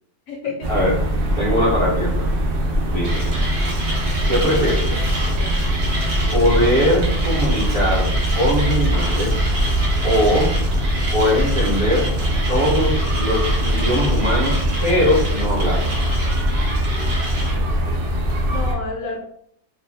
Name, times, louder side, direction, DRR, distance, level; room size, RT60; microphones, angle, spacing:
voice 1, 0.3-0.8 18.4-19.3, left 4 dB, 70° left, 0 dB, 0.8 m, -30 dB
sound 1, 0.6-18.7, equal, 85° right, 0.5 m, -21 dB
voice 2, 1.4-2.3 2.9-3.3 4.3-4.9 6.3-8.1 8.3-9.3 10.0-10.5 11.1-12.1 12.5-15.9, left 1 dB, 30° right, -6 dB, 0.6 m, -20 dB
Mechanisms, 3.0-17.6, right 1 dB, 55° right, 0.9 m, -30 dB
2.6 x 2.5 x 3.2 m, 0.69 s
omnidirectional pair, 1.7 m